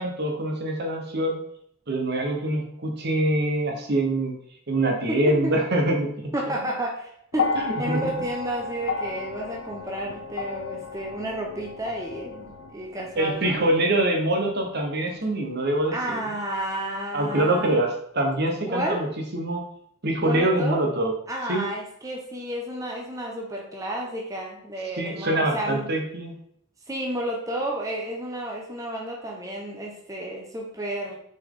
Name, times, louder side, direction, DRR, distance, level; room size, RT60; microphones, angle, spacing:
voice 1, 0.0-1.4 1.9-4.4 4.7-6.3 7.5-8.1 13.2-16.2 17.1-19.1 19.3-19.6 20.0-21.1 21.5-21.7 24.9-26.4, right 1 dB, 50° right, 2 dB, 1.1 m, -24 dB
voice 2, 5.1-5.5 6.3-13.6 15.9-17.8 18.7-19.0 20.2-20.8 21.3-25.9 26.9-31.2, right 1 dB, 15° right, -1 dB, 0.9 m, -31 dB
sound 1, 7.3-15.7 16.7-16.8, left 4 dB, 65° left, 0.5 m, -34 dB
6.0 x 4.5 x 3.8 m, 0.69 s
head